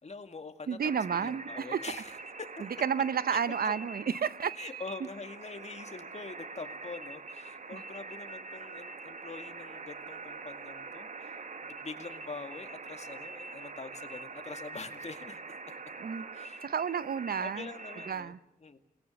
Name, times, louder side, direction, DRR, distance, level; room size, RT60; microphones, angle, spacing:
voice 1, 0.0-2.5 3.3-3.8 4.6-11.4 11.6-15.6 16.3-16.6 17.4-18.8, left 4 dB, 45° left, 8 dB, 2.2 m, -44 dB
voice 2, 0.7-1.8 2.6-4.5 5.0-5.1 7.7-7.8 16.0-16.3 16.6-17.7 18.1-18.4, right 7 dB, 70° right, 16 dB, 0.9 m, -31 dB
sound 1, 0.8-18.1, right 4 dB, 50° right, 1.4 m, -44 dB
28.5 x 20.5 x 6.5 m, 0.87 s
cardioid pair, 65°, 16 cm